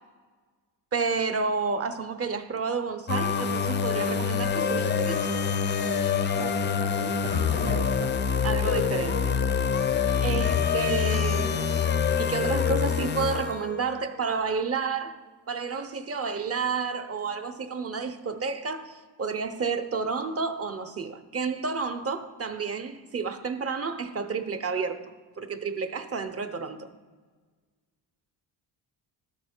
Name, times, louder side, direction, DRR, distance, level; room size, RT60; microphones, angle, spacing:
voice 1, 0.9-5.2 8.4-9.2 10.2-11.7 12.2-15.2 15.5-25.1 25.4-26.9, right 5 dB, 30° right, 0.7 m, -30 dB
sound 1, 3.1-13.9, left 6 dB, 25° left, 0.4 m, -26 dB
voice 2, 6.3-8.1, right 7 dB, 85° right, 0.6 m, -38 dB
12.5 x 4.2 x 4.3 m
cardioid pair, 105°, 45 cm